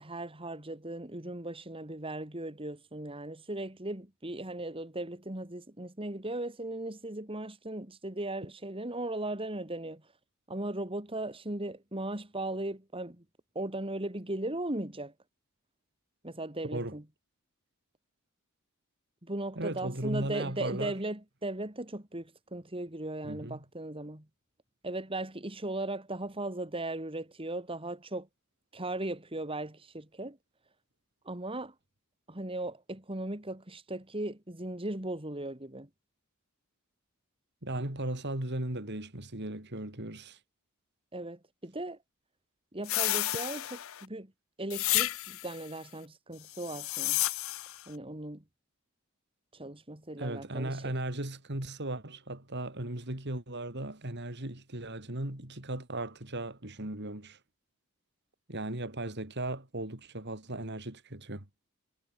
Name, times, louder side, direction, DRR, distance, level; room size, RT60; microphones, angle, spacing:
voice 1, 0.0-10.0 10.5-13.2 13.5-15.1 16.2-17.0 19.2-24.3 24.8-28.3 28.7-30.4 31.2-31.7 32.3-35.9 41.1-42.0 42.7-44.3 44.6-47.2 47.9-48.4 49.5-50.9, right 1 dB, 25° right, 2.6 m, -37 dB
voice 2, 19.6-21.0 23.2-23.6 37.6-40.4 50.2-57.4 58.5-61.5, right 1 dB, 50° right, 3.7 m, -37 dB
sound 1, 42.9-44.1 44.7-45.6 46.5-47.8, left 16 dB, 65° left, 0.6 m, -31 dB
head